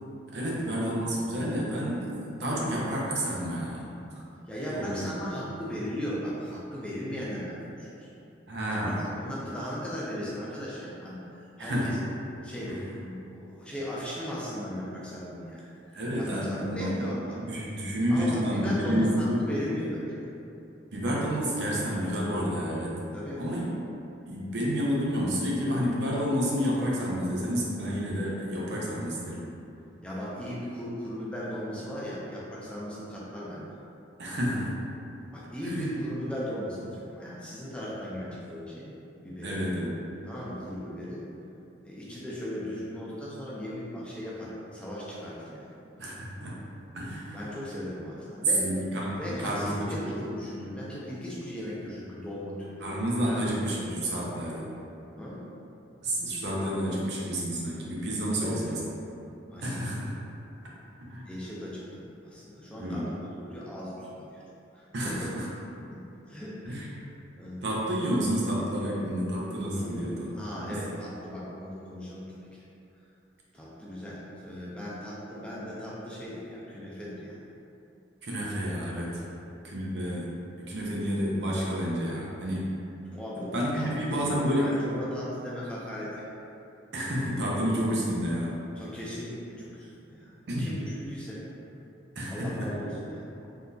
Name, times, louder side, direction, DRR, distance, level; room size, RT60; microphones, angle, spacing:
voice 1, 0.3-3.9 4.7-5.3 8.5-9.0 11.6-12.0 12.7-12.8 15.9-17.0 17.4-19.4 20.9-23.0 23.4-23.7 24.3-29.4 34.2-34.8 35.6-35.9 39.4-39.9 46.0-46.6 46.9-47.5 48.6-50.0 52.8-54.7 56.0-58.8 59.6-60.1 61.1-61.3 62.8-63.1 64.9-65.5 66.6-66.9 67.6-70.8 78.2-79.2 79.6-80.3 80.6-82.7 83.5-84.8 86.9-88.6 90.5-90.7 92.2-92.7, equal, 65° right, -5 dB, 0.6 m, -30 dB
voice 2, 4.5-8.1 8.7-12.0 12.4-12.7 13.0-15.6 16.2-17.4 18.1-20.3 23.1-23.5 30.0-33.7 35.3-38.9 39.2-39.6 40.3-41.2 41.8-45.7 47.3-48.7 49.2-52.9 53.3-53.9 55.2-55.4 58.4-58.8 59.5-59.8 61.2-64.4 64.7-65.3 65.9-66.0 66.3-66.8 67.4-67.6 69.7-72.4 73.5-77.4 79.2-79.3 83.1-86.3 88.8-90.3 90.6-91.4 92.3-93.3, equal, 5° left, -7 dB, 0.5 m, -37 dB
3.6 x 2.7 x 2.3 m, 2.8 s
head